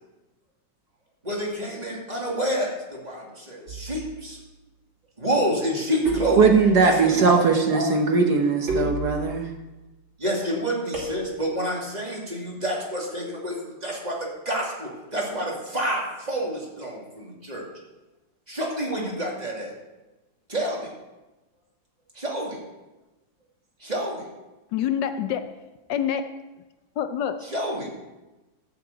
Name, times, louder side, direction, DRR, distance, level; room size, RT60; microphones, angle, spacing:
voice 1, 1.2-4.4 5.2-6.4 6.8-7.4 7.7-7.9 10.2-17.6 18.5-19.7 20.5-20.9 22.1-22.6 23.8-24.3 27.4-27.9, equal, 20° right, -3 dB, 2.3 m, -28 dB
sound 1, 3.7-4.2 6.1-7.0 8.7-9.6 10.9-11.7, right 3 dB, 90° right, 3.6 m, -31 dB
voice 2, 6.4-9.5, right 4 dB, 60° right, 4 dB, 1.4 m, -19 dB
voice 3, 24.7-25.5 25.9-26.3 27.0-27.4, left 9 dB, 75° left, 9 dB, 1.2 m, -26 dB
11.5 x 5.8 x 8.1 m, 1.1 s
omnidirectional pair, 2.1 m